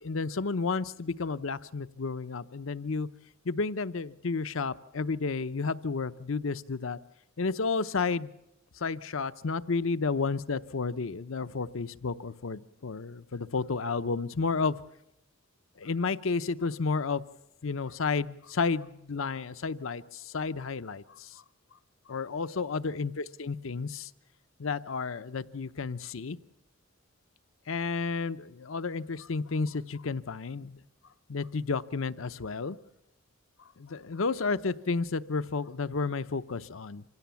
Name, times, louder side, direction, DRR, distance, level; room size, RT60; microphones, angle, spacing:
voice 1, 0.0-3.1 3.5-7.0 7.4-8.3 8.8-14.8 15.8-17.2 17.6-20.0 20.3-21.0 22.1-24.1 24.6-26.4 27.7-30.8 31.3-32.8 33.8-37.0, left 4 dB, 70° left, 13 dB, 0.7 m, -31 dB
25.5 x 16.5 x 7.0 m, 0.86 s
head